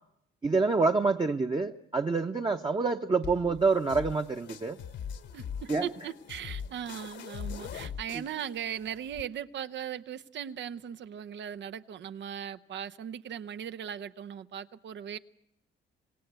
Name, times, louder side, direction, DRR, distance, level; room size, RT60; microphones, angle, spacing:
voice 1, 0.4-4.8 5.7-5.8, right 4 dB, 25° right, 0.9 m, -27 dB
sound 1, 3.2-9.2, left 7 dB, 65° left, 1.2 m, -42 dB
voice 2, 5.3-15.2, right 9 dB, 65° right, 0.9 m, -38 dB
26.5 x 17.5 x 8.2 m
cardioid pair, 90°, 20 cm